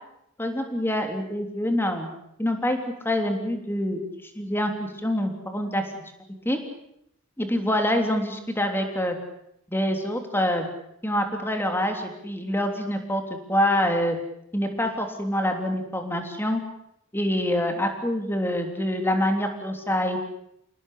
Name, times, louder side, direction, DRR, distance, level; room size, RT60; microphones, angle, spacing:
voice 1, 0.4-2.1 2.4-2.8 3.0-6.0 6.4-6.6 7.4-9.2 9.7-10.7 11.0-13.2 13.5-14.2 14.5-16.6 17.1-20.3, left 1 dB, 10° left, 4 dB, 3.3 m, -26 dB
28.5 x 19.0 x 8.4 m, 0.78 s
head